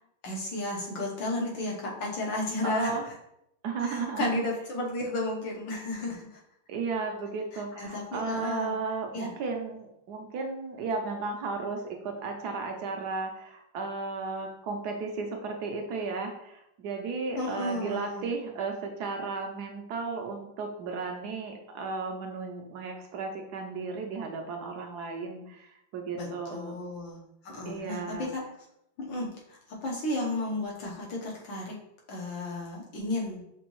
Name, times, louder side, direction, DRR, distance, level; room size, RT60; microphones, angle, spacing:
voice 1, 0.2-3.1 3.8-6.4 7.5-8.7 9.1-9.3 17.4-18.3 26.1-28.4 29.0-31.7 32.1-33.4, left 2 dB, 90° left, -2 dB, 1.8 m, -33 dB
voice 2, 2.6-3.1 3.6-4.5 6.7-26.8 27.7-28.3, right 4 dB, 70° right, 3 dB, 1.0 m, -34 dB
6.0 x 2.6 x 3.0 m, 0.80 s
omnidirectional pair, 2.0 m